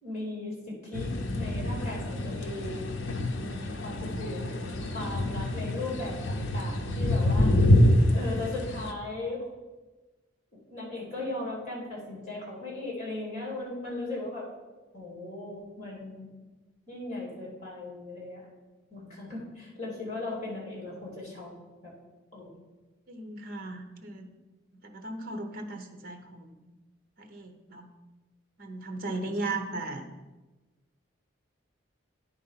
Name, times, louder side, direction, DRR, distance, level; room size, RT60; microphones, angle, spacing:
voice 1, 0.0-3.0 3.4-7.6 8.1-9.5 10.7-14.5 14.9-16.3 16.9-18.4 18.9-21.5 21.8-21.9 22.3-22.5 29.4-29.6, left 2 dB, 35° left, -4 dB, 2.8 m, -37 dB
sound 1, 0.9-8.9, left 1 dB, 70° left, 0.7 m, -26 dB
voice 2, 23.1-24.3 24.8-26.7 27.2-27.9 28.6-30.1, right 2 dB, 45° right, 6 dB, 0.9 m, -37 dB
9.7 x 4.2 x 5.7 m, 1.2 s
head